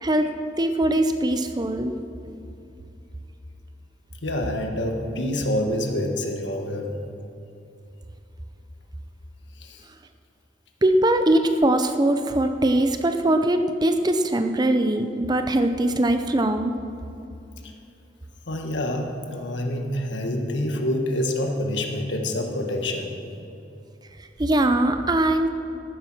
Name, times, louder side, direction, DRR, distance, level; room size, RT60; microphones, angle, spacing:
voice 1, 0.0-0.3 0.6-1.9 10.8-16.7 24.4-25.5, right 1 dB, 20° right, 7 dB, 0.6 m, -21 dB
voice 2, 4.2-7.0 9.5-9.9 17.6-17.7 18.5-23.2, left 1 dB, 80° left, 3 dB, 1.5 m, -27 dB
14.0 x 9.2 x 6.1 m, 2.7 s
head